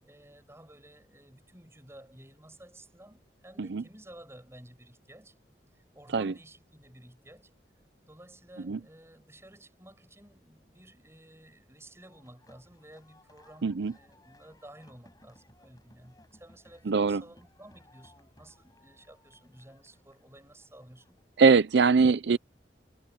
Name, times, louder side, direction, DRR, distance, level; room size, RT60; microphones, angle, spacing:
voice 1, 0.0-5.3 5.8-7.5 8.1-21.2, right 1 dB, 15° right, 5.9 m, -53 dB
sound 1, 12.0-21.6, left 1 dB, 20° left, 6.0 m, -61 dB
voice 2, 13.6-13.9 16.9-17.2 21.4-22.4, right 4 dB, 75° right, 0.5 m, -22 dB
head